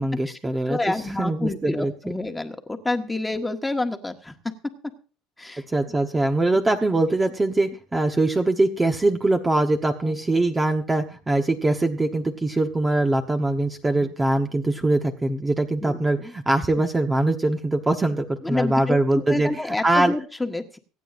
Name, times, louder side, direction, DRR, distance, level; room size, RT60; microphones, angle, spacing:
voice 1, 0.0-0.8 1.2-1.9 5.7-19.5 19.8-20.1, right 2 dB, 15° right, 5 dB, 1.1 m, -22 dB
voice 2, 0.7-4.7 5.4-5.6 6.5-6.6 10.0-10.2 13.9-14.1 15.8-16.0 18.4-20.8, left 2 dB, 10° left, 5 dB, 1.6 m, -28 dB
25.0 x 9.2 x 2.6 m, 0.37 s
supercardioid pair, 120°, 0 cm